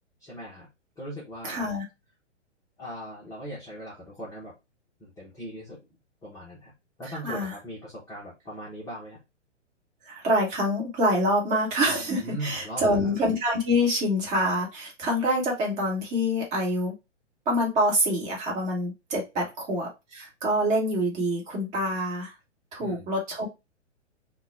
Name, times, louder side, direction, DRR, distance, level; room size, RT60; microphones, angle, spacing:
voice 1, 0.2-0.7 1.0-1.6 2.8-4.5 5.0-5.8 6.2-6.7 7.0-9.2 12.2-13.1 19.4-19.5 22.8-23.1, equal, 10° left, -7 dB, 0.7 m, -39 dB
voice 2, 1.4-1.8 7.2-7.5 10.1-16.9 17.5-22.3 22.7-23.5, equal, 20° right, -2 dB, 1.2 m, -26 dB
3.8 x 2.2 x 3.4 m, 0.24 s
figure-of-eight pair, 115°, 36 cm